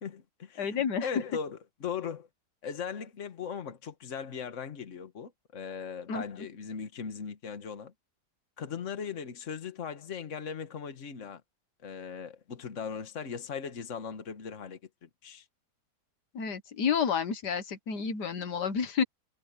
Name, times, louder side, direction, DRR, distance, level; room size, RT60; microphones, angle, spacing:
voice 1, 0.0-2.3 2.6-7.9 8.6-11.4 11.8-15.4, left 7 dB, 50° left, 1.7 m, -39 dB
voice 2, 0.6-1.1 6.1-6.2 16.3-19.0, left 7 dB, 85° left, 2.0 m, -30 dB
omnidirectional pair, 1.7 m